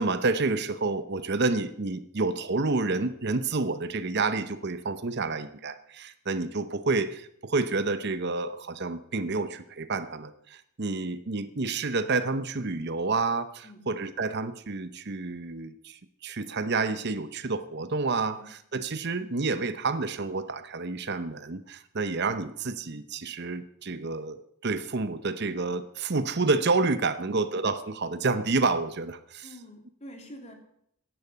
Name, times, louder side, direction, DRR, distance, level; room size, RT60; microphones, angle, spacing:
voice 1, 0.0-29.5, right 3 dB, 50° right, 12 dB, 0.8 m, -29 dB
voice 2, 29.4-30.5, equal, 30° left, 3 dB, 2.9 m, -46 dB
15.5 x 10.5 x 6.8 m, 0.69 s
head